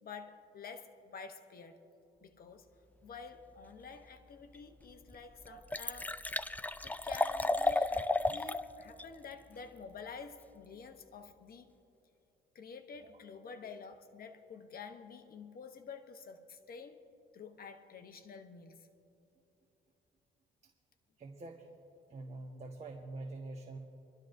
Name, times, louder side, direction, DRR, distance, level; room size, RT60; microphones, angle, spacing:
voice 1, 0.0-1.8 2.2-2.7 3.0-6.6 6.8-11.7 12.5-17.0 17.3-18.9, left 5 dB, 50° left, 7 dB, 1.0 m, -49 dB
Liquid, 4.6-4.7 5.1-5.2 5.4-8.6 9.0-9.1, left 2 dB, 10° left, 0.4 m, -33 dB
voice 2, 21.2-21.7 22.1-23.8, right 2 dB, 35° right, 1 dB, 1.2 m, -45 dB
25.5 x 12.0 x 2.6 m, 2.8 s
cardioid pair, 90°, 20 cm